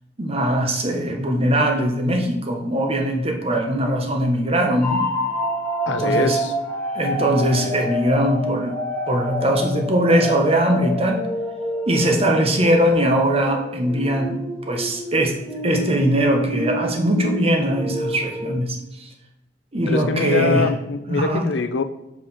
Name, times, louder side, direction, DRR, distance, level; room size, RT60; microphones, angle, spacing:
voice 1, 0.2-5.0 5.9-6.4 6.9-8.8 9.1-11.2 11.9-15.4 15.6-19.1 19.7-20.7 21.1-21.4, right 1 dB, 35° right, 3 dB, 1.0 m, -21 dB
sound 1, 4.8-18.5, equal, 10° left, 1.9 m, -28 dB
voice 2, 5.9-6.5 19.9-21.8, left 4 dB, 90° left, 10 dB, 0.6 m, -23 dB
5.8 x 4.8 x 5.6 m, 0.91 s
head